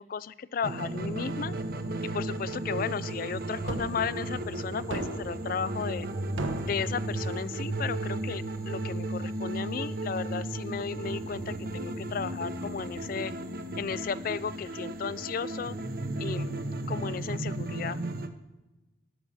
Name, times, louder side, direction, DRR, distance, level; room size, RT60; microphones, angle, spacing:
voice 1, 0.0-1.5 2.0-6.1 6.6-13.3 13.8-15.8 16.2-16.6 16.9-18.0, left 6 dB, 45° left, 18 dB, 0.3 m, -34 dB
sound 1, 0.6-18.3, right 2 dB, 50° right, 0.7 m, -34 dB
sound 2, 3.7-3.9 4.9-5.4 6.4-6.9, right 2 dB, 85° right, 1.0 m, -34 dB
13.0 x 6.2 x 5.5 m, 1.1 s
head